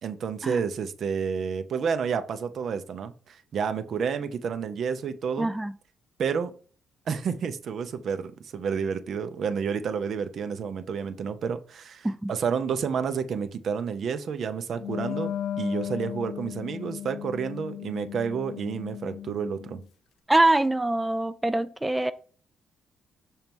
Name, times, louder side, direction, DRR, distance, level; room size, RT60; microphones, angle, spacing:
voice 1, 0.0-5.5 6.2-6.5 7.1-19.8, right 6 dB, 60° right, 0.7 m, -30 dB
voice 2, 5.4-5.7 12.0-12.3 20.3-22.1, right 2 dB, 10° right, 0.4 m, -24 dB
Wind instrument woodwind instrument, 14.8-19.8, left 10 dB, 75° left, 0.6 m, -35 dB
6.5 x 3.0 x 5.3 m
cardioid pair, 90°, 0 cm